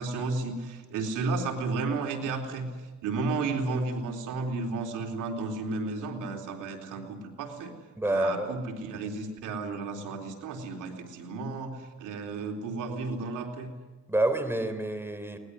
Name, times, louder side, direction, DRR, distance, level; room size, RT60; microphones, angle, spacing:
voice 1, 0.0-2.7 3.0-7.7 8.0-13.7, right 3 dB, 90° right, 2 dB, 3.7 m, -33 dB
voice 2, 8.0-8.5 14.1-15.4, right 1 dB, 10° right, 9 dB, 3.5 m, -28 dB
21.5 x 19.5 x 9.5 m, 1.2 s
cardioid pair, 90°, 30 cm